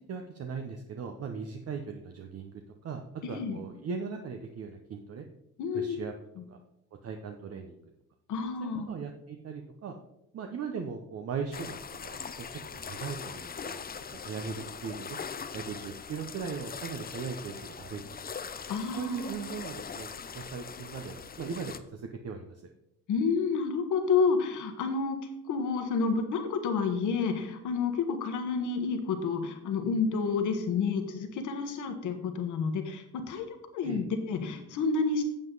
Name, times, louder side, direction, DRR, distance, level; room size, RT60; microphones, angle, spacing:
voice 1, 0.1-3.0 3.3-5.2 5.7-6.1 6.5-6.6 7.0-7.8 8.6-10.0 10.3-11.8 12.0-12.5 12.7-13.8 14.1-15.2 15.5-18.0 18.4-18.5 19.0-20.1 20.3-22.6 33.8-34.0, right 5 dB, 55° right, 5 dB, 0.9 m, -38 dB
voice 2, 3.2-3.6 5.6-6.0 8.3-8.9 18.7-19.3 23.1-25.2 25.5-35.2, left 5 dB, 80° left, 6 dB, 1.4 m, -29 dB
sound 1, 11.5-21.8, left 6 dB, 30° left, 0.7 m, -41 dB
8.7 x 7.5 x 4.0 m, 0.86 s
cardioid pair, 90°, 30 cm